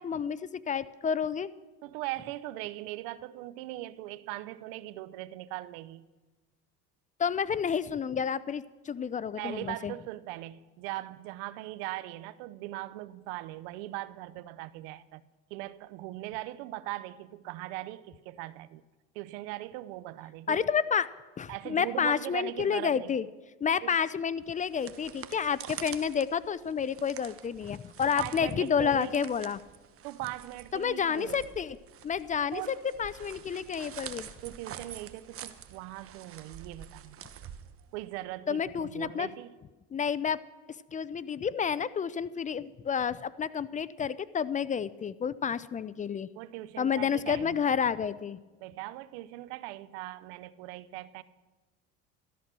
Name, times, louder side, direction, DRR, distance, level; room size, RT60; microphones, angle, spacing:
voice 1, 0.0-1.5 7.2-9.9 20.5-21.1 21.4-23.2 23.6-29.6 30.7-31.8 32.0-34.3 38.5-39.3 39.9-40.4 40.9-46.3 46.8-48.4, left 7 dB, 25° left, 0.5 m, -30 dB
voice 2, 1.8-6.0 9.4-15.2 15.5-18.8 19.1-20.6 21.5-23.1 23.8-24.0 28.0-29.3 30.0-31.4 32.5-32.8 34.4-37.2 37.9-39.5 46.4-47.6 48.6-51.2, right 16 dB, 85° right, 0.7 m, -40 dB
sound 1, 24.5-38.2, right 9 dB, 45° right, 1.1 m, -47 dB
13.5 x 13.0 x 6.1 m
supercardioid pair, 100°, 31 cm